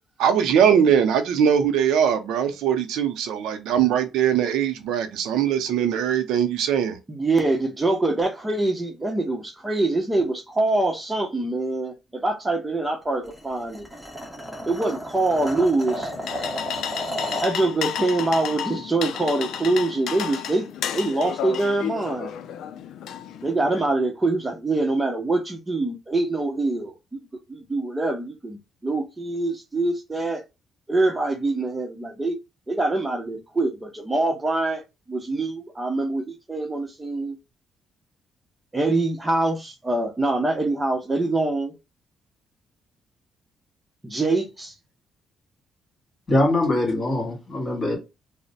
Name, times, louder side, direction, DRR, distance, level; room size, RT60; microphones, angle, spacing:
voice 1, 0.2-7.0, right 8 dB, 90° right, 0.5 m, -21 dB
voice 2, 7.1-13.9 14.7-16.1 17.4-20.7 20.9-22.3 23.4-26.9 27.5-30.4 30.9-32.4 32.7-34.8 35.1-37.4 38.7-41.7 44.1-44.7, right 2 dB, 20° right, 0.8 m, -24 dB
sound 1, 13.2-17.6, equal, ahead, 1.1 m, -33 dB
sound 2, 15.8-23.8, left 9 dB, 75° left, 0.4 m, -32 dB
voice 3, 46.3-48.0, left 1 dB, 35° left, 2.0 m, -22 dB
3.1 x 2.1 x 4.0 m
cardioid pair, 90°, 0 cm